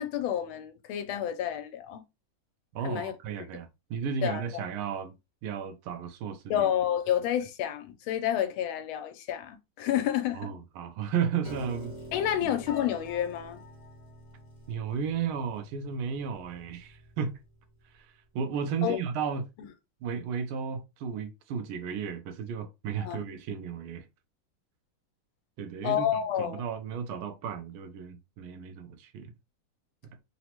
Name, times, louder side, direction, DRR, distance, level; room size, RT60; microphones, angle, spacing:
voice 1, 0.0-2.0 2.8-3.1 3.4-3.5 4.2-4.7 6.5-10.5 12.1-13.6 18.8-19.0 23.0-23.2 25.8-26.6, left 10 dB, 80° left, 1.4 m, -29 dB
voice 2, 2.7-5.1 5.4-6.7 10.3-11.9 14.7-17.4 18.3-19.5 20.0-24.1 25.6-26.1 26.4-29.3 30.0-30.2, right 6 dB, 85° right, 1.5 m, -34 dB
Piano, 11.4-17.7, left 1 dB, 45° left, 1.6 m, -46 dB
3.8 x 2.1 x 2.9 m
omnidirectional pair, 2.3 m